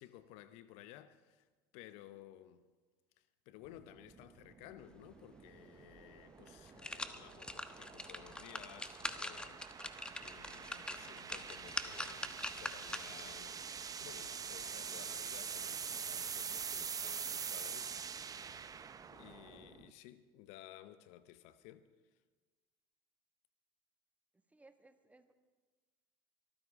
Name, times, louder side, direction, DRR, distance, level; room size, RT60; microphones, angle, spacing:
voice 1, 0.0-1.5 1.7-2.7 3.2-18.3 19.1-21.9, left 13 dB, 70° left, 0.8 m, -56 dB
sound 1, 3.7-19.9, right 6 dB, 30° right, 0.8 m, -45 dB
sound 2, 5.9-6.0 6.5-13.3 13.8-13.9, left 1 dB, 10° left, 1.2 m, -44 dB
Writing, 10.4-19.7, right 8 dB, 85° right, 1.0 m, -64 dB
voice 2, 24.5-25.3, right 2 dB, 10° right, 1.6 m, -63 dB
23.5 x 14.0 x 3.7 m
hypercardioid pair, 70°, 12 cm